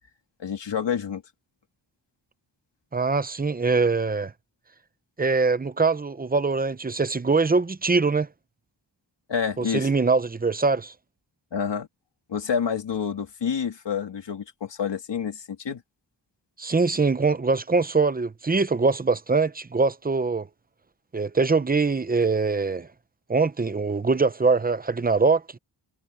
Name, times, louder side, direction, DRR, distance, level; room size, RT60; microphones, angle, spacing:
voice 1, 0.4-1.2 9.3-9.9 11.5-11.9 12.3-15.8, left 7 dB, 75° left, 2.9 m, -28 dB
voice 2, 2.9-4.3 5.2-8.3 9.6-10.9 16.6-20.5 21.1-22.9 23.3-25.4, right 4 dB, 20° right, 0.7 m, -23 dB
wide cardioid pair, 175°, 43 cm